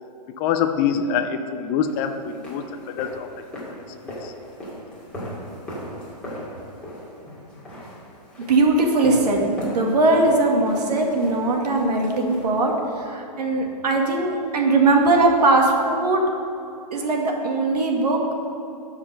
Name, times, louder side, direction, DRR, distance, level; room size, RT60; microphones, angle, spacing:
voice 1, 0.4-3.3 3.6-3.7 4.0-4.3, left 7 dB, 20° left, 6 dB, 0.4 m, -25 dB
sound 1, 1.9-13.0, equal, 5° left, 2.6 m, -38 dB
voice 2, 8.5-16.2 16.9-18.2, right 2 dB, 70° right, 1 dB, 1.9 m, -20 dB
12.0 x 5.1 x 6.4 m, 2.7 s
hypercardioid pair, 150°, 21 cm